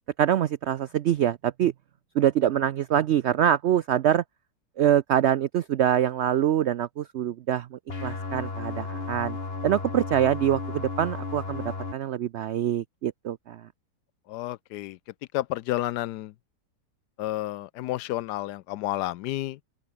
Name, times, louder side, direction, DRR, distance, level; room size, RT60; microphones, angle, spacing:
voice 1, 0.2-1.7 2.1-4.2 4.8-9.4 9.6-11.6 11.9-13.7, right 10 dB, 80° right, 0.6 m, -24 dB
sound 1, 7.9-11.9, left 3 dB, 35° left, 2.5 m, -34 dB
voice 2, 14.3-15.0 15.3-16.3 17.2-19.6, left 15 dB, 80° left, 1.2 m, -31 dB
omnidirectional pair, 1.7 m